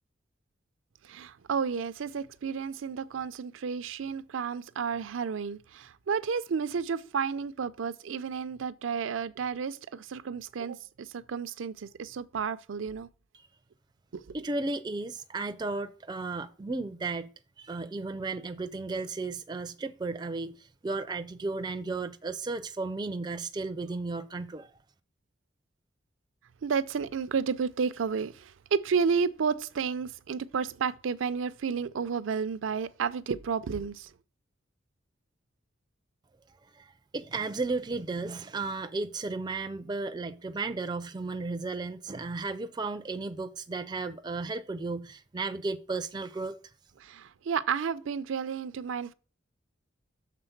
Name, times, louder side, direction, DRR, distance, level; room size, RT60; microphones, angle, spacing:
voice 1, 1.0-13.1 14.1-14.4 26.6-34.1 47.0-49.1, right 6 dB, 85° right, 0.4 m, -31 dB
voice 2, 14.3-17.3 17.6-24.8 36.7-46.6, right 3 dB, 20° right, 0.4 m, -34 dB
6.7 x 3.8 x 5.7 m
head